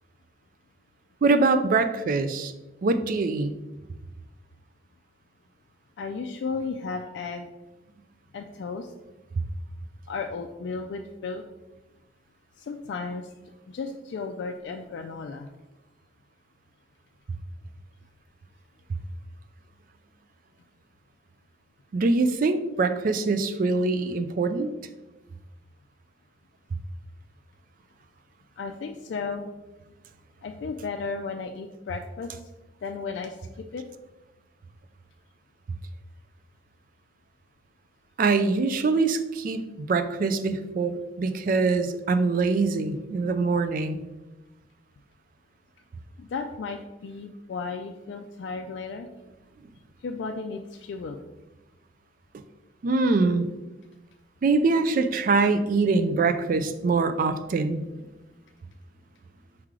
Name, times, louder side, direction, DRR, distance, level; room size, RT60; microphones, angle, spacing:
voice 1, 1.2-2.5 2.8-3.5 21.9-24.7 38.2-44.0 52.8-53.5 54.4-57.8, right 3 dB, 45° right, 10 dB, 0.3 m, -24 dB
voice 2, 6.0-7.5 8.3-8.9 10.1-11.4 12.6-13.3 13.7-15.5 28.6-29.5 30.4-32.3 32.8-33.4 33.7-33.8 46.2-49.1 50.0-51.2, left 4 dB, 70° left, 3 dB, 0.3 m, -34 dB
4.6 x 3.1 x 3.6 m, 1.0 s
head